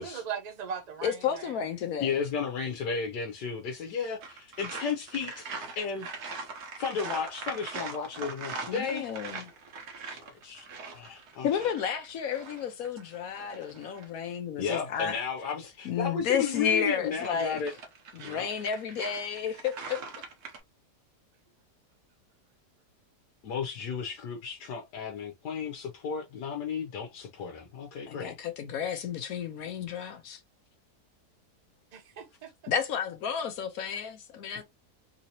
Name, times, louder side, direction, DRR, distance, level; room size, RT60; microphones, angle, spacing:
voice 1, 0.0-1.7 31.9-32.7, right 7 dB, 45° right, 0.5 m, -39 dB
voice 2, 1.0-2.2 8.7-9.4 11.4-15.2 15.8-17.6 18.1-20.0 28.1-30.4 32.7-34.6, left 8 dB, 70° left, 1.0 m, -32 dB
voice 3, 2.0-6.4 6.8-9.1 10.0-10.7 10.9-11.5 14.6-17.7 18.2-18.5 23.4-28.3, left 6 dB, 90° left, 1.4 m, -34 dB
sound 1, 4.2-14.1 16.2-20.6, right 4 dB, 65° right, 1.5 m, -42 dB
3.7 x 2.8 x 2.8 m
omnidirectional pair, 1.7 m